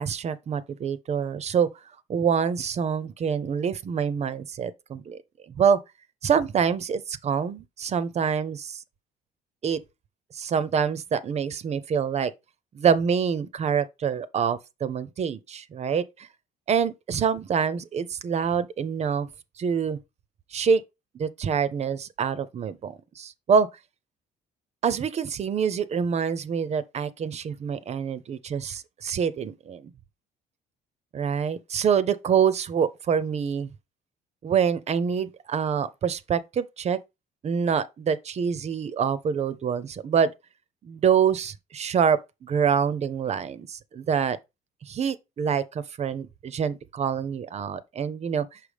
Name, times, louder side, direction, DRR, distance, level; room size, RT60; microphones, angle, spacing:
voice 1, 0.0-1.7 2.1-5.2 5.5-5.8 6.2-8.8 9.6-9.8 10.3-12.3 12.7-16.3 16.7-19.3 19.6-20.0 20.5-20.8 21.1-23.7 24.8-29.9 31.1-33.7 34.4-37.0 37.4-40.3 40.8-44.4 44.8-48.6, right 7 dB, 40° right, 0.6 m, -26 dB
5.9 x 5.0 x 3.4 m
cardioid pair, 110°, 17 cm